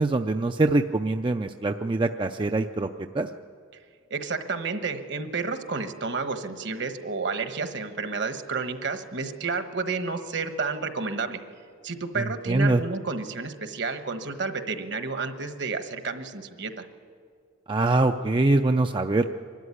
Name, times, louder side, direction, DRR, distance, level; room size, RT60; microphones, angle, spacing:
voice 1, 0.0-2.9 3.1-3.3 12.2-12.8 17.7-19.3, right 2 dB, 25° right, 6 dB, 0.4 m, -23 dB
voice 2, 4.1-11.4 11.8-16.8, right 4 dB, 60° right, 8 dB, 1.3 m, -31 dB
24.5 x 13.0 x 9.9 m, 2.1 s
head